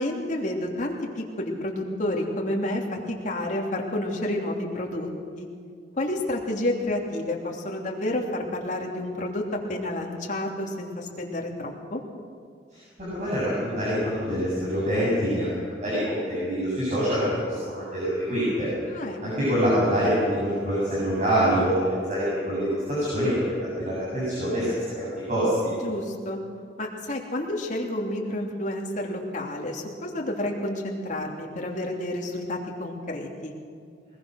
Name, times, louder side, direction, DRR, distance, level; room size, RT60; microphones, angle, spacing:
voice 1, 0.0-5.1 5.3-5.5 6.0-12.0 18.9-19.5 25.8-26.4 26.8-33.5, left 1 dB, 45° left, 0 dB, 3.1 m, -30 dB
voice 2, 13.0-18.7 19.2-23.5 23.8-24.7 25.0-25.7, equal, 45° right, -8 dB, 7.9 m, -25 dB
21.5 x 21.0 x 6.4 m, 2.2 s
head